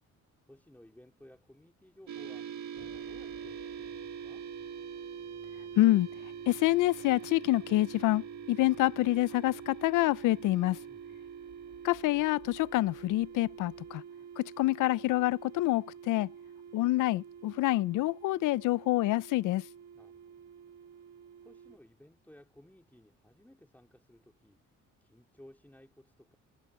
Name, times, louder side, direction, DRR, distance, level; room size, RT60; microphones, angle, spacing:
voice 1, 0.4-4.5 10.9-11.2 19.9-20.5 21.4-24.6 25.0-26.4, left 1 dB, 5° left, 3.7 m, -58 dB
sound 1, 2.1-21.8, right 8 dB, 65° right, 1.8 m, -45 dB
sound 2, 2.8-14.0, left 6 dB, 40° left, 5.4 m, -59 dB
voice 2, 5.8-6.1 6.5-10.8 11.8-14.0 14.4-16.3 16.7-19.6, left 17 dB, 85° left, 0.5 m, -27 dB
cardioid pair, 90°, 30 cm